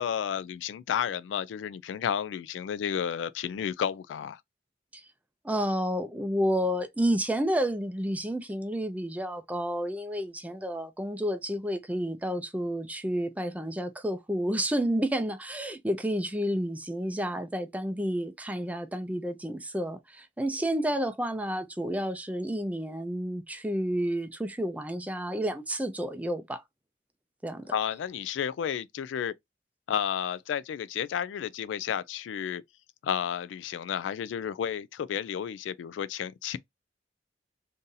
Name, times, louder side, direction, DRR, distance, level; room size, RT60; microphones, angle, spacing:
voice 1, 0.0-4.4 27.7-29.3 29.9-32.6 33.0-36.6, left 8 dB, 90° left, 0.3 m, -32 dB
voice 2, 5.4-26.6 27.4-27.7, equal, 10° right, 0.5 m, -30 dB
2.7 x 2.6 x 3.8 m
head